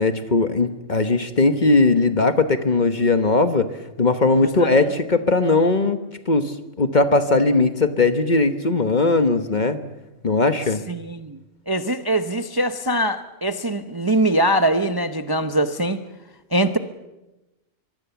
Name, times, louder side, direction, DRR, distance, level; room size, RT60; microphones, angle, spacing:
voice 1, 0.0-9.8 10.2-10.8, left 3 dB, 35° left, 10 dB, 1.2 m, -19 dB
voice 2, 10.9-11.4 11.7-16.0 16.5-16.8, right 1 dB, 20° right, 9 dB, 0.7 m, -22 dB
23.5 x 23.0 x 7.0 m, 1.0 s
omnidirectional pair, 1.4 m